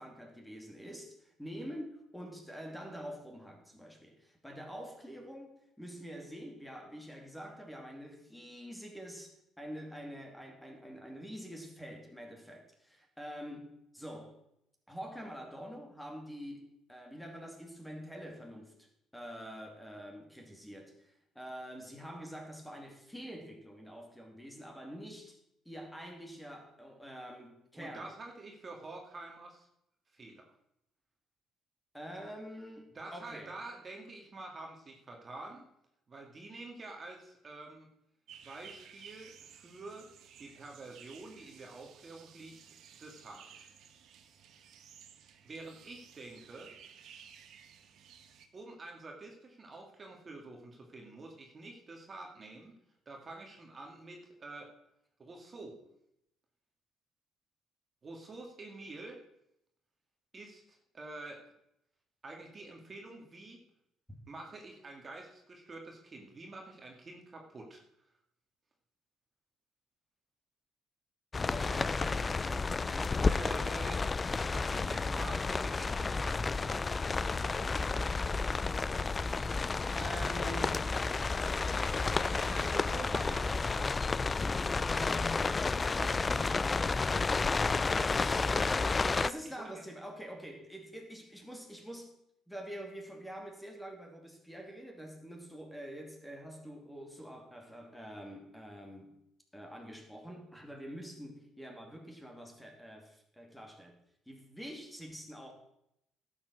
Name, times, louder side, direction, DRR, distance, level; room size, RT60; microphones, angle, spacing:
voice 1, 0.0-14.3 14.9-25.4 25.6-28.1 31.9-33.5 71.5-73.7 79.6-81.4 89.1-92.1 92.5-99.1 99.5-104.0 104.3-105.5, equal, 5° left, 2 dB, 2.6 m, -46 dB
voice 2, 27.7-29.7 30.1-30.5 32.9-35.6 36.1-37.9 38.4-40.1 40.4-42.6 43.0-43.7 45.4-46.7 48.5-52.8 53.1-54.7 55.2-55.8 58.0-59.2 60.3-61.4 62.2-63.6 64.3-67.8 73.2-74.0 74.5-78.0 82.4-84.0 84.7-87.1 87.7-89.3 89.6-89.8, right 2 dB, 35° right, 1 dB, 2.1 m, -48 dB
sound 1, 38.3-48.5, right 8 dB, 65° right, 1.3 m, -56 dB
sound 2, 71.3-89.3, left 4 dB, 25° left, 0.3 m, -31 dB
11.5 x 7.4 x 6.4 m, 0.79 s
supercardioid pair, 85°, 0 cm